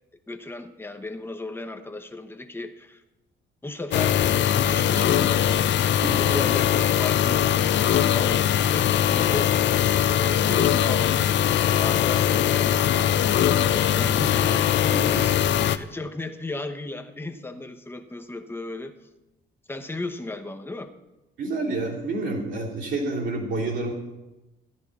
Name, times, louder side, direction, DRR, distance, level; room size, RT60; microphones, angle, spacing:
voice 1, 0.3-3.0 3.6-4.2 4.5-5.6 6.1-7.5 8.1-9.5 10.0-13.2 13.4-18.9 19.7-20.9, left 2 dB, 10° left, 6 dB, 1.0 m, -35 dB
sound 1, 3.9-15.8, left 10 dB, 65° left, 0.5 m, -21 dB
voice 2, 6.0-6.3 21.4-23.9, right 2 dB, 75° right, -5 dB, 3.3 m, -28 dB
14.0 x 10.5 x 4.1 m, 1.0 s
cardioid pair, 90°, 20 cm